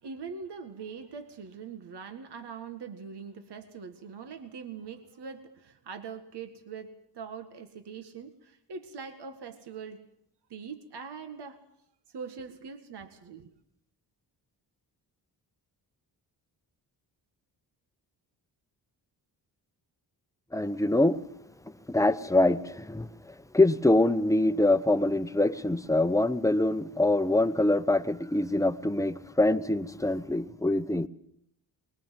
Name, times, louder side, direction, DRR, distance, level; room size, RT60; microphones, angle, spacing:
voice 1, 0.0-10.0 10.5-11.6 12.1-13.5, right 5 dB, 70° right, 1.8 m, -42 dB
voice 2, 20.5-21.2 21.9-23.1 23.5-31.1, left 2 dB, 5° left, 1.0 m, -24 dB
23.5 x 21.5 x 7.5 m
cardioid pair, 80°, 42 cm